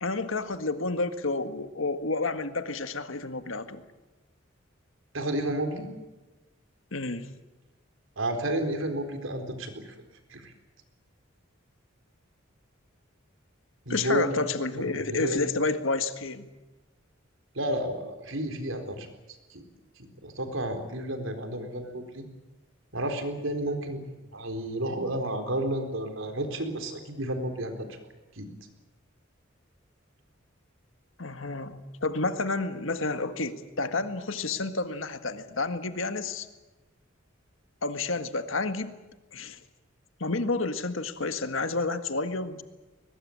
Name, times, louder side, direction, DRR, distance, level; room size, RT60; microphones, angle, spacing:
voice 1, 0.0-3.8 6.9-7.3 13.9-16.5 31.2-36.5 37.8-38.9 39.3-39.6 40.2-42.6, left 3 dB, 75° left, 9 dB, 1.8 m, -30 dB
voice 2, 5.1-5.9 8.2-9.8 10.3-10.5 13.9-14.4 14.8-15.4 17.6-19.1 19.5-19.6 20.0-22.2 22.9-27.9 28.4-28.5, right 1 dB, 75° right, 6 dB, 4.1 m, -31 dB
22.0 x 21.0 x 8.8 m, 1.1 s
head